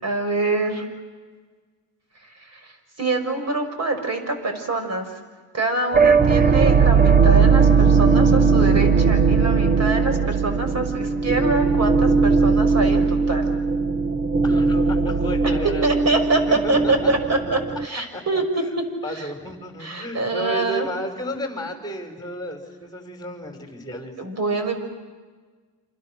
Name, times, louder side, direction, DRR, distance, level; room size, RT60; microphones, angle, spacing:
voice 1, 0.0-0.9 2.2-2.7 3.0-5.1 5.5-13.5 15.6-19.3 19.8-20.9 24.2-24.8, right 3 dB, 35° right, 6 dB, 6.5 m, -25 dB
sound 1, 5.9-17.9, right 5 dB, 20° right, 0.9 m, -18 dB
voice 2, 14.4-15.9 16.5-17.4 18.1-18.2 19.0-24.1, equal, 10° left, 3 dB, 6.2 m, -32 dB
29.5 x 28.0 x 6.5 m, 1.4 s
cardioid pair, 110°, 43 cm